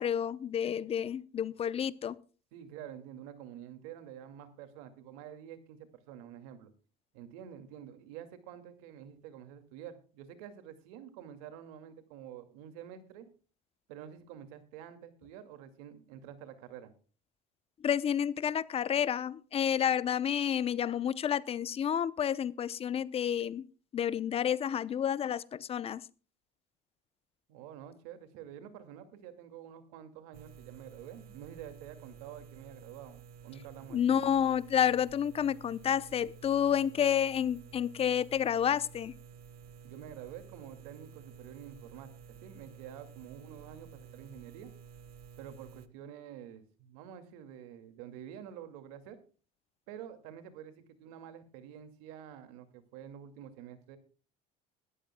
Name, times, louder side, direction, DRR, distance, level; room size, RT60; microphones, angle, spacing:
voice 1, 0.0-2.2 17.8-23.6 23.9-26.0 33.9-39.1, left 9 dB, 35° left, 0.7 m, -30 dB
voice 2, 2.5-6.7 7.1-13.3 13.9-16.9 27.5-34.3 39.8-44.7 45.4-49.2 49.9-54.0, right 9 dB, 85° right, 2.3 m, -48 dB
sound 1, 30.3-45.9, right 6 dB, 60° right, 1.1 m, -52 dB
21.0 x 14.0 x 2.3 m
cardioid pair, 120°, 18 cm